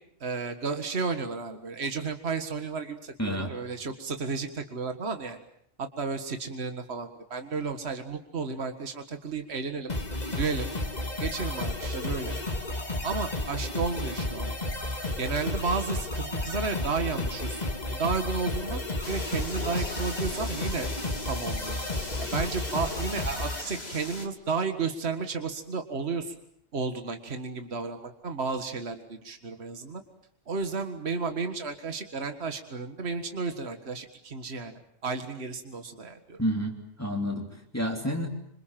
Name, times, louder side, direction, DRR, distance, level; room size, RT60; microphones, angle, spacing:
voice 1, 0.2-5.4 5.8-9.9 10.3-10.7 11.2-12.3 13.0-14.6 15.2-17.6 17.9-18.8 19.1-20.9 21.2-21.8 22.2-26.3 26.7-30.0 30.5-34.7 35.0-36.4, right 4 dB, 65° right, 7 dB, 2.0 m, -32 dB
voice 2, 3.2-3.6 36.4-36.7 37.0-38.3, equal, 15° left, 1 dB, 3.2 m, -29 dB
sound 1, 9.9-23.6, left 2 dB, 35° left, 2.4 m, -32 dB
sound 2, 19.0-24.3, left 2 dB, 60° left, 3.2 m, -40 dB
27.0 x 26.5 x 7.5 m, 0.65 s
omnidirectional pair, 1.2 m